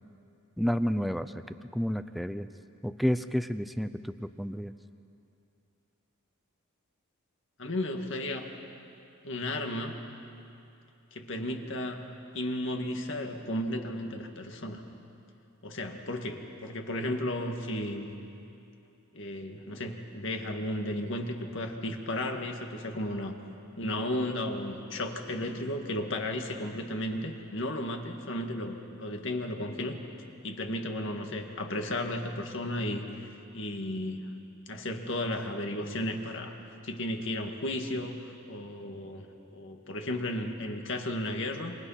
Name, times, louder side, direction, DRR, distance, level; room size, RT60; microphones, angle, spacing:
voice 1, 0.6-1.3 1.7-2.5 2.8-4.7, equal, ahead, 10 dB, 0.5 m, -30 dB
voice 2, 7.6-8.5 9.2-10.0 11.1-12.1 12.3-14.8 15.6-18.1 19.1-23.3 23.8-30.0 30.4-33.3 33.5-34.3 34.7-36.5 36.8-39.3 39.5-41.8, left 1 dB, 60° left, 4 dB, 2.0 m, -34 dB
27.5 x 26.5 x 5.8 m, 2.6 s
head